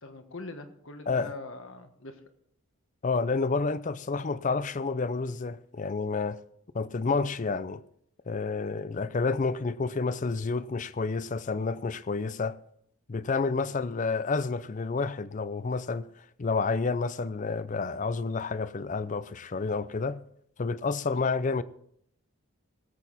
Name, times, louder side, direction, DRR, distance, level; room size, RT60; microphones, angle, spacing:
voice 1, 0.0-2.2 13.7-13.8, left 2 dB, 60° left, 1.4 m, -42 dB
voice 2, 3.0-6.4 6.7-7.8 8.3-12.6 13.1-16.1 16.4-20.2 20.6-21.6, left 4 dB, 35° left, 0.4 m, -29 dB
19.0 x 8.1 x 4.1 m
head